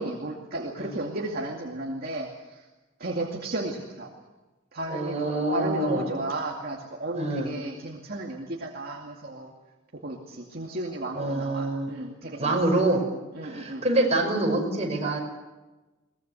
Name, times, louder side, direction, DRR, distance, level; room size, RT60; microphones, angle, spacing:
voice 1, 0.0-2.6 3.0-4.1 4.7-9.5 9.9-12.6 13.3-13.9, right 2 dB, 50° right, 0 dB, 2.5 m, -34 dB
voice 2, 4.9-6.1 7.1-7.5 11.2-11.9 12.4-13.0 13.4-15.2, right 2 dB, 35° right, 1 dB, 5.6 m, -26 dB
23.0 x 19.5 x 8.2 m, 1.1 s
head